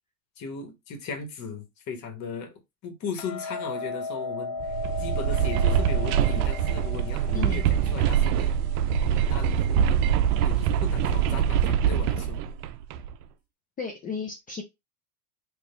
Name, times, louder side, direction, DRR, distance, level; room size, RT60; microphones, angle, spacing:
voice 1, 0.4-2.5 2.8-4.6 5.0-8.5 9.0-9.8 10.4-12.4, left 5 dB, 40° left, 1.2 m, -37 dB
Hammer, 3.2-9.4, left 4 dB, 55° left, 0.7 m, -36 dB
sound 1, 4.6-13.1, right 8 dB, 75° right, 0.6 m, -24 dB
voice 2, 7.3-7.7 13.8-14.6, left 5 dB, 20° left, 0.4 m, -34 dB
4.1 x 2.5 x 3.1 m
supercardioid pair, 135°, 46 cm